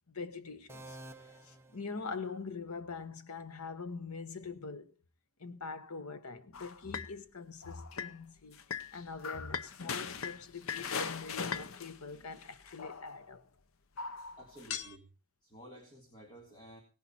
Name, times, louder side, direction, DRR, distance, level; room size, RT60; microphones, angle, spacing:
voice 1, 0.1-1.0 1.4-5.0 5.4-8.6 8.9-13.4, left 4 dB, 85° left, 1.1 m, -43 dB
sound 1, 0.7-2.6, right 2 dB, 10° right, 0.8 m, -52 dB
sound 2, 6.5-7.1 7.6-8.1 8.5-13.3 14.0-15.0, left 6 dB, 65° left, 0.7 m, -40 dB
voice 2, 14.4-15.1 15.4-16.8, right 1 dB, 20° left, 2.1 m, -53 dB
17.5 x 10.5 x 4.3 m
head